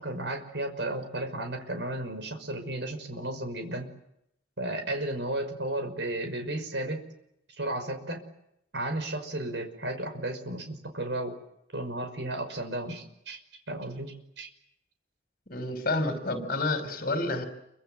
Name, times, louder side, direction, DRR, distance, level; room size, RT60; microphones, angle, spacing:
voice 1, 0.0-3.9 4.6-7.0 7.6-8.2 8.7-11.4 11.7-13.4 13.7-14.5, right 1 dB, 70° right, 7 dB, 5.8 m, -34 dB
voice 2, 15.5-17.5, left 2 dB, 50° left, 7 dB, 5.8 m, -29 dB
28.5 x 25.0 x 7.9 m, 0.78 s
head